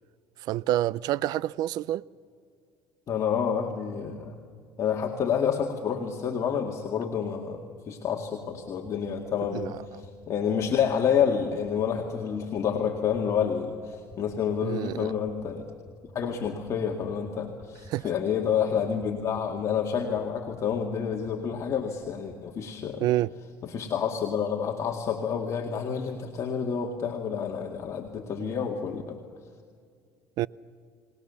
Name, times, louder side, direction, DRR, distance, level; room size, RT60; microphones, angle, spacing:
voice 1, 0.4-2.0 9.5-9.8 14.6-15.1 17.9-18.1 23.0-23.3 30.4-30.5, right 14 dB, 65° right, 0.5 m, -28 dB
voice 2, 3.1-4.4 4.8-15.6 16.1-23.1 23.6-29.2, left 7 dB, 45° left, 2.1 m, -29 dB
sound 1, 8.6-22.4, right 1 dB, 10° right, 4.8 m, -51 dB
30.0 x 19.5 x 7.1 m
supercardioid pair, 100°, 7 cm